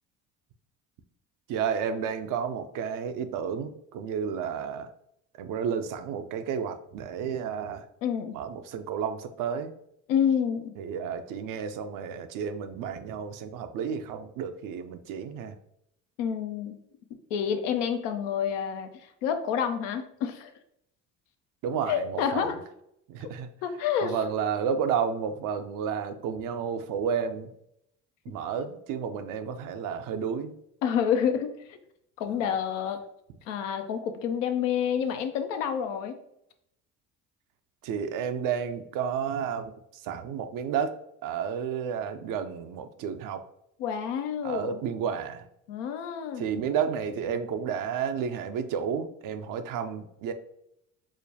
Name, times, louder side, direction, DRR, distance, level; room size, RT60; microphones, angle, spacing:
voice 1, 1.5-4.9 5.4-7.9 8.3-9.7 10.8-15.6 21.6-22.5 23.1-23.5 24.0-27.5 28.3-30.5 32.3-32.4 37.8-41.0 41.2-43.4 44.4-45.5 46.4-50.3, right 7 dB, 60° right, 9 dB, 0.5 m, -31 dB
voice 2, 8.0-8.4 10.1-10.7 16.2-16.8 17.3-18.9 19.2-20.5 21.9-22.6 23.6-24.2 30.8-31.8 32.2-33.0 33.5-36.1 43.8-44.8 45.7-46.5, left 8 dB, 85° left, 7 dB, 0.5 m, -28 dB
4.9 x 2.1 x 2.7 m, 0.77 s
hypercardioid pair, 60°, 37 cm